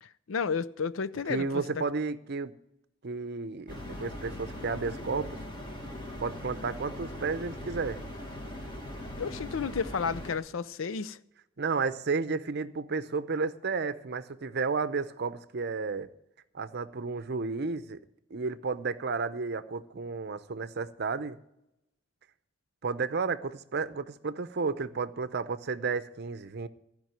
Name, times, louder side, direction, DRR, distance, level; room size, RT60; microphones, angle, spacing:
voice 1, 0.0-1.6 9.2-11.2, left 5 dB, 75° left, 0.5 m, -32 dB
voice 2, 1.3-2.5 3.0-5.4 6.2-8.0 11.6-16.1 16.5-18.0 18.3-21.4 22.8-26.7, right 4 dB, 55° right, 0.7 m, -32 dB
sound 1, 3.7-10.4, left 1 dB, 25° left, 1.8 m, -40 dB
15.5 x 5.3 x 9.0 m
head